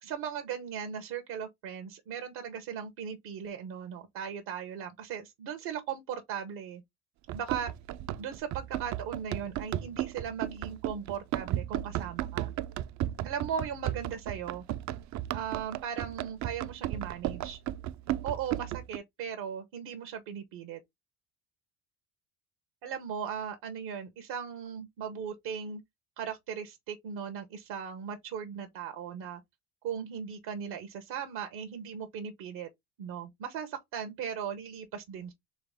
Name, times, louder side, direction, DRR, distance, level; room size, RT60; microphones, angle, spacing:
voice 1, 0.0-6.8 7.3-7.7 8.2-12.5 13.2-14.6 15.3-17.6 18.2-20.8 22.8-25.8 26.2-29.4 29.8-32.7 33.0-35.3, right 7 dB, 75° right, 1.1 m, -38 dB
Run, 7.3-19.0, right 13 dB, 50° right, 0.4 m, -35 dB
3.9 x 3.2 x 3.5 m
supercardioid pair, 80°, 38 cm